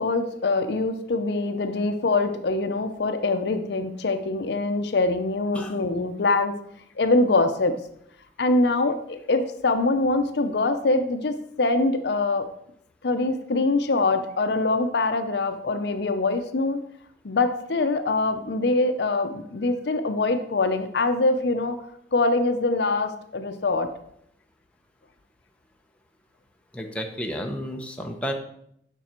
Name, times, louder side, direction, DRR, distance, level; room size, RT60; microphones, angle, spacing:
voice 1, 0.0-6.6 7.0-7.8 8.4-12.5 13.0-16.8 17.2-21.8 22.1-23.9, left 3 dB, 60° left, 8 dB, 0.6 m, -24 dB
voice 2, 26.7-28.3, equal, 5° left, 2 dB, 0.7 m, -32 dB
6.9 x 6.0 x 4.4 m, 0.71 s
head